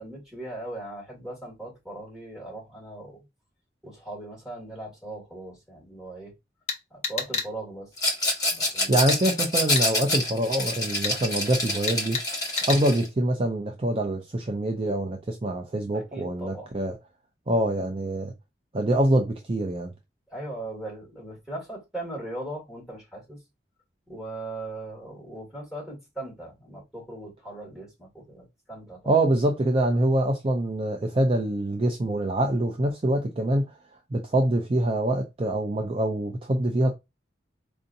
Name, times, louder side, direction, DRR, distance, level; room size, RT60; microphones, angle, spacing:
voice 1, 0.0-3.2 3.8-6.3 6.9-7.9 8.5-9.1 15.9-16.7 20.3-23.4 24.1-29.2, right 2 dB, 5° right, 2.2 m, -39 dB
sound 1, 6.7-7.5 9.1-9.2 9.8-9.9 11.0-11.2 11.9-12.3 12.6-12.8, left 5 dB, 40° left, 0.9 m, -29 dB
Rattle, 8.0-13.1, left 1 dB, 20° left, 1.3 m, -27 dB
voice 2, 8.9-12.2 12.6-17.0 17.5-18.3 18.7-19.9 29.1-33.8 34.1-36.9, right 1 dB, 30° right, 0.4 m, -25 dB
4.6 x 2.6 x 2.6 m
head